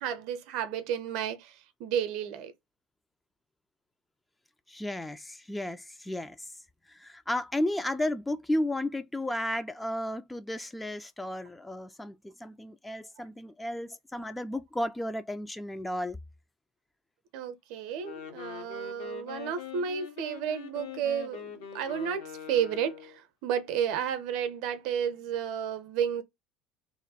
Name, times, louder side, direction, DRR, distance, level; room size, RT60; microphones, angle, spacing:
voice 1, 0.0-2.5 17.3-26.2, right 8 dB, 55° right, 0.6 m, -32 dB
voice 2, 4.7-6.6 6.9-16.2, left 1 dB, 10° left, 0.3 m, -33 dB
Wind instrument woodwind instrument, 17.9-23.2, left 9 dB, 60° left, 0.7 m, -43 dB
3.0 x 2.1 x 4.0 m
figure-of-eight pair, 65°, 0 cm